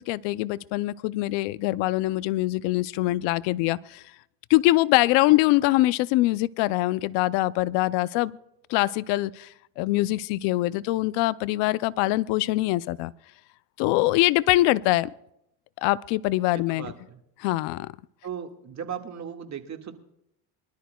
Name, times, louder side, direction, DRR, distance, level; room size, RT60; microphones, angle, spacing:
voice 1, 0.1-4.0 4.5-8.4 8.7-9.5 9.8-13.1 13.8-15.1 15.8-16.9 17.4-17.9, left 18 dB, 85° left, 19 dB, 0.6 m, -23 dB
voice 2, 16.5-17.2 18.2-19.9, right 8 dB, 40° right, 5 dB, 1.9 m, -37 dB
24.5 x 12.5 x 2.3 m, 0.79 s
cardioid pair, 110°, 42 cm